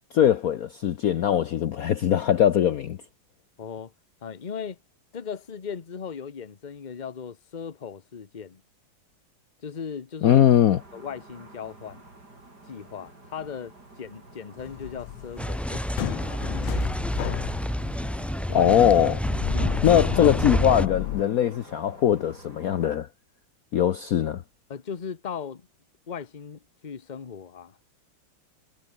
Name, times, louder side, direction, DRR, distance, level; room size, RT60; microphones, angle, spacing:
voice 1, 0.1-3.0 10.2-10.8 18.5-19.2 19.8-23.1 23.7-24.4, left 10 dB, 60° left, 1.1 m, -21 dB
voice 2, 3.6-3.9 4.2-4.8 5.1-8.6 9.6-10.4 10.9-12.0 12.7-16.9 19.5-19.8 20.1-20.3 24.7-25.7 26.1-27.8, left 7 dB, 30° left, 1.1 m, -38 dB
sound 1, 10.3-23.0, right 2 dB, 55° right, 7.2 m, -51 dB
sound 2, 14.6-21.2, left 15 dB, 85° left, 1.4 m, -34 dB
sound 3, 15.4-20.9, equal, ahead, 0.8 m, -28 dB
omnidirectional pair, 2.1 m